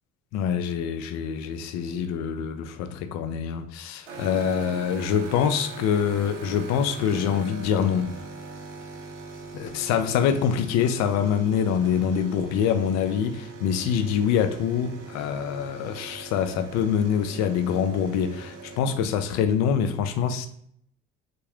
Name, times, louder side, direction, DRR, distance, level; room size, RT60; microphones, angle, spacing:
voice 1, 0.3-8.2 9.5-20.5, left 8 dB, 50° left, 0.5 m, -25 dB
sound 1, 4.1-18.8, right 3 dB, 80° right, 0.6 m, -41 dB
3.6 x 2.2 x 3.1 m
figure-of-eight pair, 50°, 36 cm